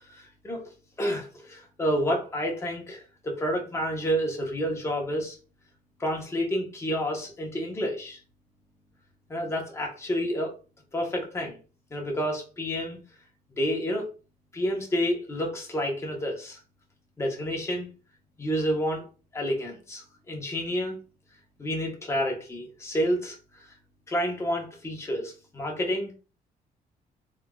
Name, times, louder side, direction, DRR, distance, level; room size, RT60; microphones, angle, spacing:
voice 1, 0.1-0.6 1.0-5.4 6.0-8.2 9.3-10.5 10.9-11.6 11.9-13.0 13.6-14.1 14.5-16.6 17.2-17.9 18.4-19.1 19.3-21.0 21.6-23.7 24.1-26.1, equal, 20° left, 0 dB, 1.1 m, -29 dB
3.6 x 3.5 x 2.4 m, 0.34 s
cardioid pair, 135°, 15 cm